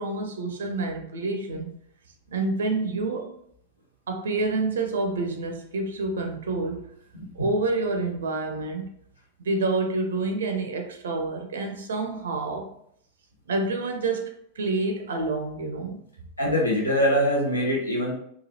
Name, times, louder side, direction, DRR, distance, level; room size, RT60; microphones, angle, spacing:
voice 1, 0.0-1.7 2.3-3.3 4.1-6.9 7.3-8.9 9.4-12.7 13.5-14.3 14.6-16.0, right 3 dB, 65° right, 5 dB, 0.4 m, -28 dB
voice 2, 16.4-18.1, equal, 80° left, -2 dB, 0.8 m, -23 dB
3.1 x 2.3 x 2.6 m, 0.68 s
figure-of-eight pair, 90°, 0 cm